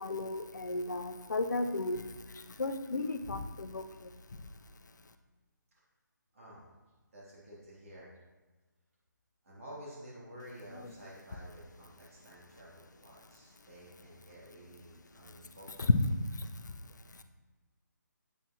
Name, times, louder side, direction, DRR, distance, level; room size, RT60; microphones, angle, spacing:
voice 1, 0.0-2.1 2.6-3.8 15.8-15.9, left 3 dB, 65° left, 8 dB, 0.8 m, -32 dB
voice 2, 6.3-6.7 7.1-8.2 9.4-15.9, equal, 45° right, -7 dB, 3.2 m, -51 dB
9.0 x 9.0 x 3.0 m, 1.2 s
figure-of-eight pair, 150°, 11 cm